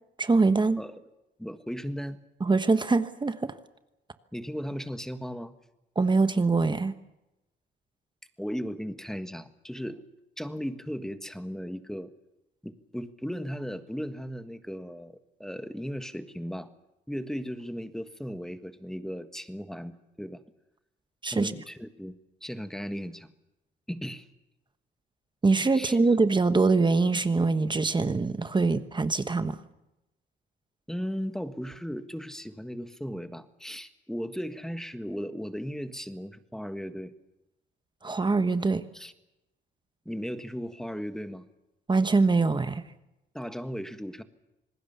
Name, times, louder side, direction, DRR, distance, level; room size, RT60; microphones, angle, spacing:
voice 1, 0.2-0.8 2.4-3.5 5.9-6.9 21.2-21.5 25.4-29.6 38.0-38.8 41.9-42.9, right 3 dB, 25° right, 10 dB, 1.2 m, -23 dB
voice 2, 1.4-2.2 4.3-5.6 8.4-10.0 10.4-12.1 12.6-16.7 17.1-20.4 21.3-23.3 23.9-24.2 25.7-26.0 30.9-37.1 38.9-39.1 40.0-41.5 43.3-44.2, equal, ahead, 10 dB, 1.5 m, -36 dB
27.0 x 19.5 x 7.0 m, 0.94 s
cardioid pair, 90°, 20 cm